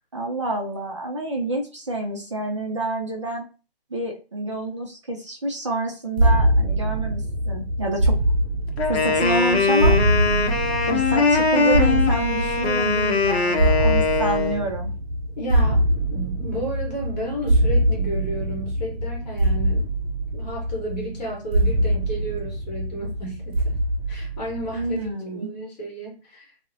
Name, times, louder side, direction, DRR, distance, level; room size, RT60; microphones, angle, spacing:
voice 1, 0.1-3.4 3.9-8.1 8.9-9.9 10.9-14.9 24.7-25.5, right 1 dB, 30° right, -1 dB, 0.4 m, -28 dB
sound 1, 6.2-25.1, right 1 dB, 75° right, 0.6 m, -23 dB
Wind instrument woodwind instrument, 8.8-14.6, left 4 dB, 80° left, 0.6 m, -21 dB
voice 2, 15.4-15.8 16.1-19.9 20.3-23.8 24.1-26.7, right 1 dB, 40° left, -2 dB, 1.1 m, -33 dB
2.3 x 2.0 x 2.6 m, 0.33 s
hypercardioid pair, 150°, 32 cm